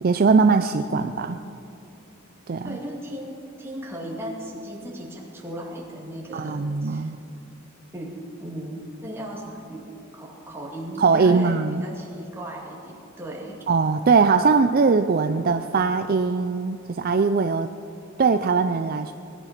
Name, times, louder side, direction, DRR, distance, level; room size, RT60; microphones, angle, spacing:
voice 1, 0.0-1.3 2.5-2.8 6.3-7.2 11.0-11.8 13.7-17.7 18.2-19.1, right 4 dB, 45° right, 9 dB, 0.4 m, -20 dB
voice 2, 2.6-7.1 7.9-13.6, right 1 dB, 10° right, -3 dB, 2.3 m, -36 dB
20.0 x 11.5 x 6.0 m, 2.7 s
head